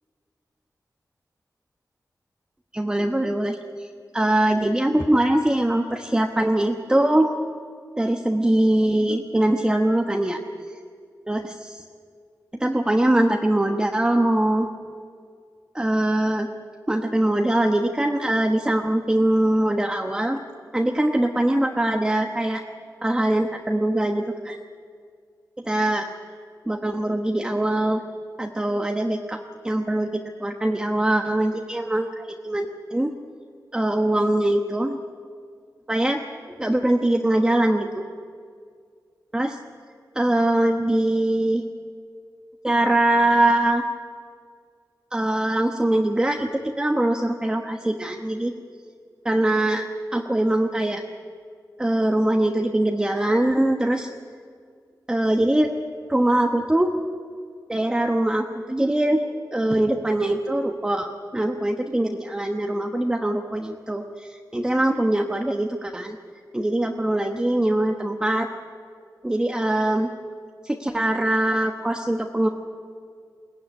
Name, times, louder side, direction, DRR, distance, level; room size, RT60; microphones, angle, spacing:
voice 1, 2.7-3.9 4.1-7.3 8.0-10.4 11.3-11.8 12.6-14.7 15.7-16.5 16.9-20.4 20.7-22.6 23.0-24.6 25.6-26.1 26.7-28.0 28.4-33.1 33.7-35.0 35.9-36.2 36.6-38.1 39.3-39.6 40.1-41.6 42.6-43.8 45.1-48.5 49.2-49.9 50.1-51.0 51.8-54.1 55.1-55.7 56.1-56.9 57.7-59.2 59.5-66.2 66.5-68.5 69.2-70.1 70.6-72.5, right 1 dB, 10° right, 3 dB, 1.2 m, -22 dB
22.0 x 17.5 x 9.8 m, 2.1 s
wide cardioid pair, 135°, 7 cm